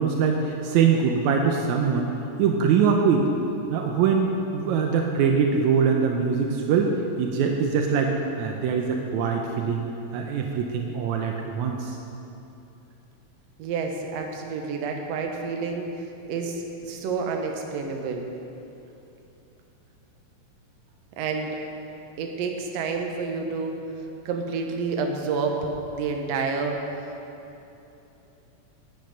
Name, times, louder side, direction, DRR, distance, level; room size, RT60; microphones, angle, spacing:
voice 1, 0.0-2.1 2.4-3.3 3.7-6.9 7.2-9.9 10.1-12.0, right 6 dB, 80° right, 2 dB, 2.0 m, -23 dB
voice 2, 13.6-18.2 21.2-21.6 22.2-23.8 24.3-26.8, right 4 dB, 65° right, 3 dB, 2.0 m, -29 dB
12.0 x 8.8 x 5.2 m, 2.9 s
omnidirectional pair, 3.3 m